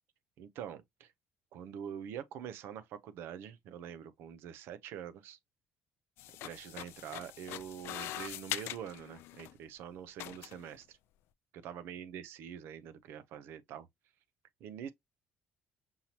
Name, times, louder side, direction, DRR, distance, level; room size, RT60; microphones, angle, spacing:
voice 1, 0.4-1.1 1.5-5.4 6.4-11.0 11.5-13.9 14.6-14.9, right 9 dB, 75° right, 0.6 m, -45 dB
sound 1, 6.2-9.5 10.2-10.7, left 15 dB, 75° left, 0.3 m, -43 dB
5.5 x 2.8 x 2.9 m
cardioid pair, 165°, 4 cm